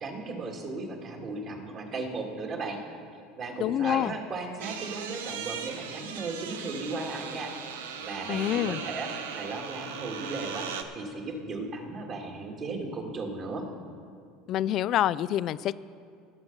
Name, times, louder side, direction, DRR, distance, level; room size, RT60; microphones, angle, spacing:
voice 1, 0.0-2.8 3.4-7.5 7.8-13.7, right 3 dB, 45° right, 1 dB, 2.1 m, -36 dB
voice 2, 3.6-4.1 8.3-8.8 14.5-15.8, left 12 dB, 55° left, 18 dB, 0.3 m, -27 dB
sound 1, 4.6-10.8, right 7 dB, 90° right, 0.8 m, -38 dB
19.0 x 6.7 x 5.3 m, 2.3 s
supercardioid pair, 90°, 0 cm